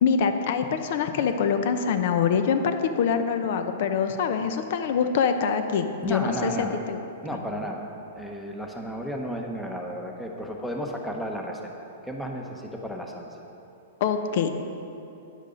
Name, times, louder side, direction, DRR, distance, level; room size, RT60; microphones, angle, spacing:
voice 1, 0.0-7.0 14.0-14.6, left 6 dB, 60° left, 8 dB, 0.7 m, -24 dB
voice 2, 6.0-6.8 7.2-7.9 8.1-11.6 12.0-13.3, equal, 5° left, 1 dB, 1.0 m, -33 dB
10.0 x 6.5 x 5.1 m, 2.8 s
hypercardioid pair, 130°, 0 cm